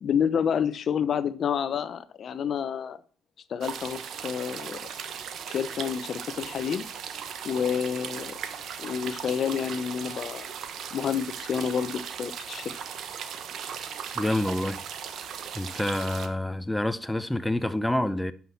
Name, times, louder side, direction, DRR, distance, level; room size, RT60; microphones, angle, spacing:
voice 1, 0.0-3.0 3.5-4.8 5.5-6.8 7.4-8.3 8.8-10.5 10.9-12.7, left 7 dB, 55° left, 0.8 m, -29 dB
sound 1, 3.6-16.3, right 7 dB, 65° right, 1.1 m, -38 dB
voice 2, 14.2-14.8 15.5-18.3, left 1 dB, 5° left, 0.7 m, -27 dB
11.0 x 6.0 x 4.2 m
supercardioid pair, 70°, 0 cm